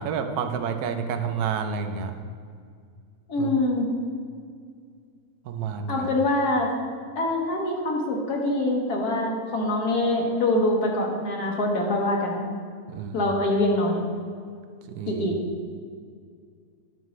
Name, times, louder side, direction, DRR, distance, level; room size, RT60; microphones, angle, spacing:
voice 1, 0.0-2.1 3.4-3.5 5.5-6.1 12.9-13.3 14.9-15.3, right 6 dB, 80° right, 7 dB, 1.1 m, -29 dB
voice 2, 3.3-3.9 5.9-6.7 7.1-12.5 13.1-14.0 15.1-15.3, left 1 dB, 80° left, -1 dB, 1.7 m, -24 dB
10.5 x 5.3 x 3.1 m, 2.2 s
omnidirectional pair, 1.6 m